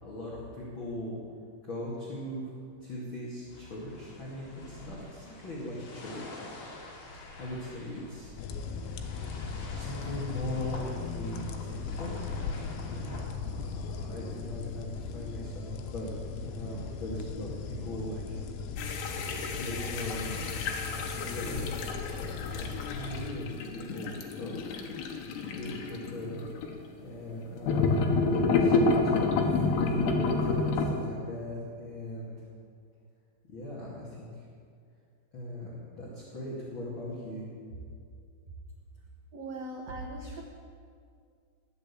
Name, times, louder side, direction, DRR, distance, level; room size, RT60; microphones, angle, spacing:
voice 1, 0.0-1.2 1.6-2.5 2.8-6.3 7.4-8.3 9.5-12.3 12.9-13.2 13.5-16.1 16.4-18.4 19.6-20.5 21.1-24.6 25.5-26.4 27.0-27.9 28.3-32.3 33.5-34.3 35.3-37.4, left 1 dB, 35° left, -6 dB, 2.5 m, -39 dB
sound 1, 3.5-13.3, left 2 dB, 50° left, 3.5 m, -47 dB
sound 2, 8.4-23.3, left 5 dB, 90° left, 3.3 m, -38 dB
sound 3, 18.8-26.7 27.6-30.9, left 3 dB, 75° left, 3.2 m, -29 dB
voice 2, 39.3-40.4, right 2 dB, 90° right, -1 dB, 1.4 m, -39 dB
20.5 x 7.1 x 8.5 m, 2.2 s
omnidirectional pair, 5.1 m